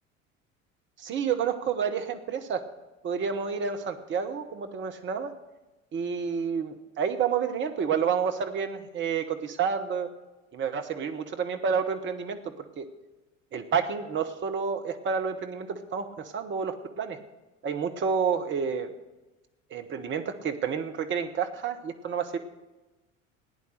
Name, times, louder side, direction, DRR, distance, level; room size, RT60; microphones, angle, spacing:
voice 1, 1.0-2.6 3.0-5.3 5.9-10.1 10.5-12.4 12.8-12.9 13.5-17.2 17.6-18.9 19.7-22.4, right 6 dB, 30° right, 7 dB, 1.1 m, -29 dB
15.5 x 10.0 x 6.6 m, 1.1 s
figure-of-eight pair, 65°, 40 cm